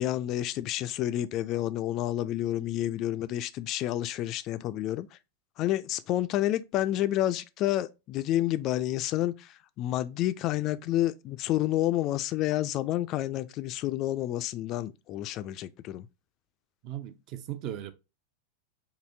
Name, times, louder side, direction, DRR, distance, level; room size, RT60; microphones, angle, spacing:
voice 1, 0.0-5.1 5.6-16.1, left 13 dB, 35° left, 0.3 m, -29 dB
voice 2, 16.8-17.9, right 11 dB, 40° right, 0.5 m, -37 dB
4.8 x 2.7 x 2.6 m
figure-of-eight pair, 90°, 0 cm